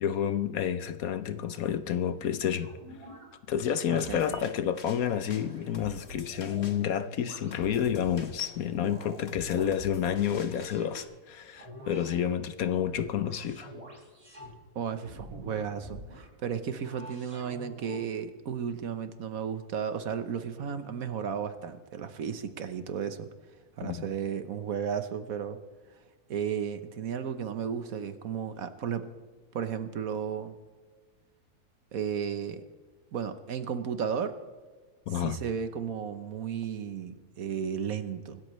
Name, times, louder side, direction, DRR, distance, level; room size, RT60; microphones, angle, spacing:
voice 1, 0.0-2.7 3.5-13.7 23.8-24.0 35.1-35.4, left 9 dB, 65° left, 1.1 m, -29 dB
sound 1, 2.6-3.3 4.0-4.5 5.0-6.8 7.2-8.1 8.6-9.7 10.4-11.0 11.6-12.2 12.7-14.5 15.0-16.3 16.8-18.0, equal, 25° right, 4.6 m, -48 dB
voice 2, 3.9-4.2 14.7-23.3 23.8-25.6 26.3-29.1 29.5-30.6 31.9-32.6 33.1-34.4 35.1-38.4, right 7 dB, 60° right, 1.3 m, -34 dB
sound 2, 4.0-11.0, left 4 dB, 45° left, 1.4 m, -48 dB
25.5 x 13.0 x 3.2 m
omnidirectional pair, 1.7 m